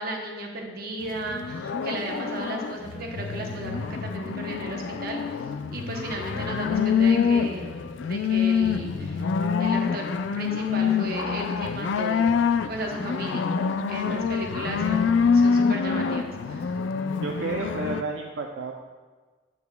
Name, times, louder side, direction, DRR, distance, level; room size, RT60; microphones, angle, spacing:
voice 1, 0.0-5.4 5.7-9.3 9.6-10.1 10.3-12.4 12.7-13.5 13.9-16.8, right 1 dB, 55° right, 1 dB, 0.9 m, -35 dB
sound 1, 1.0-18.0, left 6 dB, 80° left, 0.4 m, -26 dB
voice 2, 17.2-18.8, right 4 dB, 85° right, 2 dB, 0.5 m, -31 dB
8.3 x 7.0 x 2.3 m, 1.4 s
head